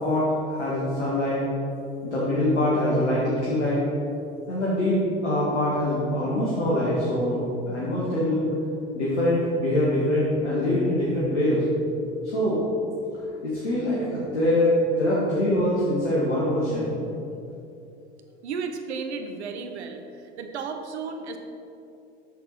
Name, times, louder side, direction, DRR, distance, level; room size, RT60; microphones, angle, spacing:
voice 1, 0.0-1.4 2.0-3.8 4.5-8.5 8.9-11.6 12.2-12.6 13.4-17.0, left 1 dB, 80° left, -8 dB, 2.0 m, -24 dB
voice 2, 18.4-21.4, right 5 dB, 75° right, 6 dB, 0.9 m, -34 dB
10.5 x 6.8 x 4.2 m, 2.8 s
figure-of-eight pair, 70°, 34 cm